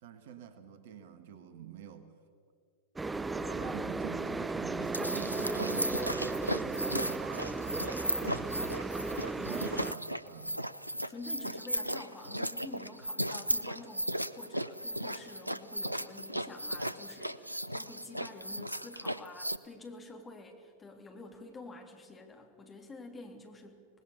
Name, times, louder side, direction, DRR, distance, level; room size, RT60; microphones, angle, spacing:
voice 1, 0.0-2.1 3.4-8.8 9.3-10.7, right 8 dB, 55° right, 10 dB, 1.6 m, -46 dB
sound 1, 3.0-9.9, right 3 dB, 10° right, 0.5 m, -35 dB
Keyboard (musical), 3.1-15.6, right 3 dB, 90° left, 4.6 m, -60 dB
sound 2, 4.8-19.6, equal, 90° right, 0.6 m, -36 dB
voice 2, 11.1-23.8, left 2 dB, 15° left, 2 dB, 3.3 m, -49 dB
25.0 x 19.5 x 6.8 m, 2.2 s
figure-of-eight pair, 90°, 0 cm